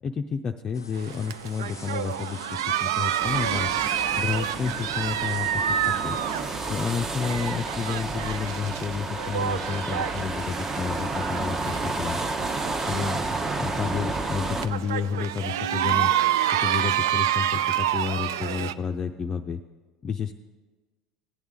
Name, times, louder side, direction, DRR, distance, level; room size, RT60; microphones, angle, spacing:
voice 1, 0.0-3.7 4.1-6.2 6.7-12.2 12.9-13.2 13.6-16.1 16.6-19.6 20.0-20.4, left 6 dB, 35° left, 4 dB, 0.5 m, -30 dB
sound 1, 0.7-6.8, left 4 dB, 90° left, 0.4 m, -46 dB
sound 2, 0.9-18.7, right 11 dB, 70° right, 0.3 m, -29 dB
sound 3, 3.2-14.7, right 3 dB, 20° right, 0.8 m, -31 dB
16.0 x 9.3 x 3.7 m, 1.3 s
hypercardioid pair, 75°, 2 cm